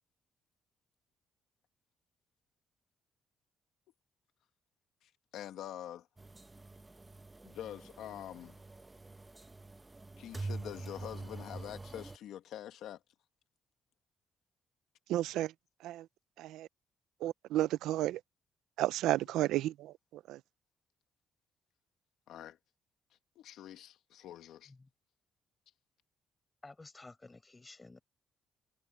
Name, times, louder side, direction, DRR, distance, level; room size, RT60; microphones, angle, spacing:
voice 1, 5.0-6.1 7.4-8.6 10.2-13.0 19.2-19.3 22.3-22.6 23.3-24.7, left 11 dB, 80° left, 1.6 m, -46 dB
sound 1, 6.2-12.2, right 3 dB, 20° right, 1.0 m, -46 dB
voice 2, 15.1-15.5 15.8-16.1 16.4-16.7 17.2-18.2 18.8-19.9 20.3-20.4, right 14 dB, 90° right, 0.5 m, -32 dB
voice 3, 26.6-28.0, left 3 dB, 20° left, 6.8 m, -53 dB
cardioid pair, 90°, 0 cm